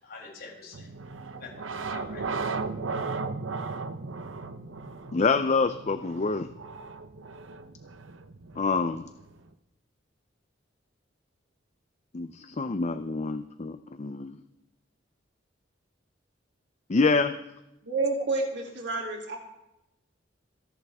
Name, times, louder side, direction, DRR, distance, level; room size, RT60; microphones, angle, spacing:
voice 1, 0.0-0.9 1.3-2.7, left 4 dB, 55° left, -4 dB, 7.3 m, -46 dB
sound 1, 0.7-9.5, right 4 dB, 85° right, 0.8 m, -36 dB
voice 2, 5.1-6.5 8.6-9.1 12.1-14.4 16.9-17.3, left 4 dB, 35° left, 10 dB, 0.6 m, -26 dB
voice 3, 17.8-19.4, right 3 dB, 65° right, 1 dB, 3.0 m, -29 dB
26.0 x 11.0 x 3.6 m, 0.89 s
head